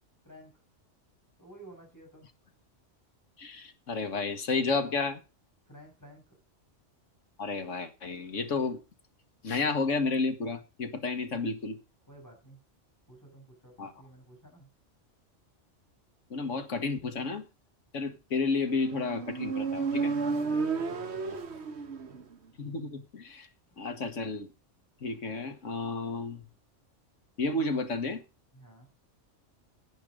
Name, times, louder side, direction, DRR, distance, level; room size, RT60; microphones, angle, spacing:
voice 1, 0.2-0.6 1.4-2.3 5.7-6.2 11.0-11.3 12.1-12.6 13.1-14.7 20.1-21.4 28.5-28.9, right 1 dB, 15° left, 6.5 m, -53 dB
voice 2, 3.4-5.2 7.4-8.8 9.4-11.8 13.8-13.9 16.3-17.4 17.9-20.1 22.6-23.5 23.8-24.5 25.0-26.4 27.4-28.2, left 3 dB, 80° left, 1.8 m, -31 dB
Motorcycle, 18.7-22.3, right 4 dB, 60° right, 1.5 m, -32 dB
10.5 x 10.0 x 5.0 m
omnidirectional pair, 1.3 m